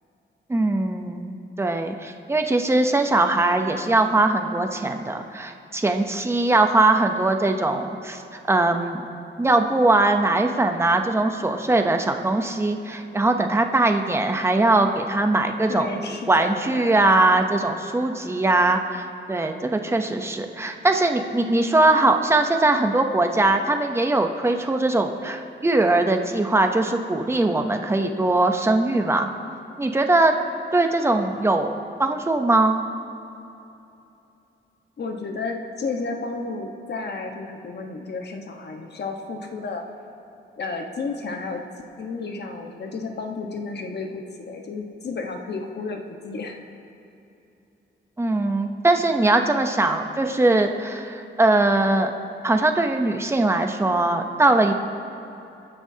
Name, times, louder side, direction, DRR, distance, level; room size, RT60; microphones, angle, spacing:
voice 1, 0.5-9.1 9.4-29.3 29.8-30.3 30.7-31.7 32.0-32.8 48.2-52.1 52.4-54.7, right 2 dB, 15° right, 5 dB, 0.7 m, -21 dB
voice 2, 15.7-17.0 35.0-39.8 40.6-41.6 42.0-46.6, left 3 dB, 60° left, 3 dB, 1.2 m, -32 dB
27.5 x 10.0 x 2.8 m, 2.8 s
wide cardioid pair, 145°, 20 cm